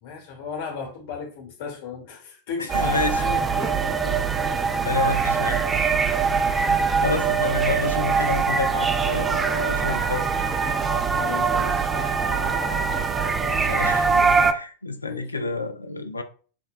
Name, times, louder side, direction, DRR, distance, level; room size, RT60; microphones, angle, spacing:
voice 1, 0.0-4.2 5.1-5.3 7.5-7.6 11.2-12.9 13.2-13.3 15.0-15.6, left 6 dB, 50° left, 1.1 m, -36 dB
voice 2, 2.6-3.2 4.8-5.6 6.2-6.3 6.7-10.3 13.6-16.2, left 3 dB, 80° left, 0.3 m, -29 dB
sound 1, 2.7-14.5, right 5 dB, 15° right, 0.3 m, -23 dB
sound 2, 8.4-13.3, right 1 dB, 55° right, 0.7 m, -37 dB
4.3 x 2.1 x 2.3 m
figure-of-eight pair, 90°, 0 cm